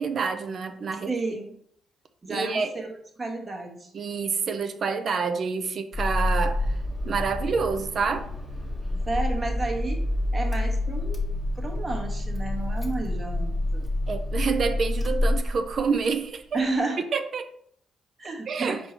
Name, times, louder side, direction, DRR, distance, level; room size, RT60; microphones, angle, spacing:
voice 1, 0.0-1.1 2.3-2.9 3.9-6.8 7.0-8.3 14.1-16.6 17.1-17.5 18.5-18.8, right 5 dB, 55° right, 0.4 m, -28 dB
voice 2, 1.1-1.5 2.2-3.9 9.1-10.0 10.3-11.2 11.5-13.9 16.5-17.0 18.2-18.8, right 3 dB, 30° right, 1.1 m, -31 dB
Car / Engine starting, 5.9-16.0, left 1 dB, 15° left, 1.1 m, -28 dB
4.4 x 2.7 x 4.4 m
cardioid pair, 90°, 0 cm